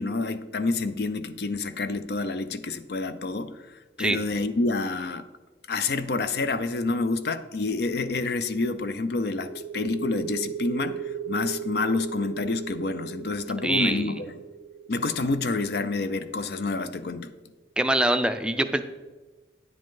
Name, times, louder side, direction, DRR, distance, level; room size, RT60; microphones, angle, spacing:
voice 1, 0.0-3.5 4.0-5.2 5.7-14.4 14.9-17.3, left 3 dB, 65° left, 12 dB, 0.5 m, -28 dB
sound 1, 9.4-16.8, right 8 dB, 85° right, 0.5 m, -37 dB
voice 2, 13.6-14.2 17.8-18.8, right 1 dB, 5° right, 8 dB, 0.4 m, -24 dB
9.5 x 7.8 x 3.8 m, 1.3 s
head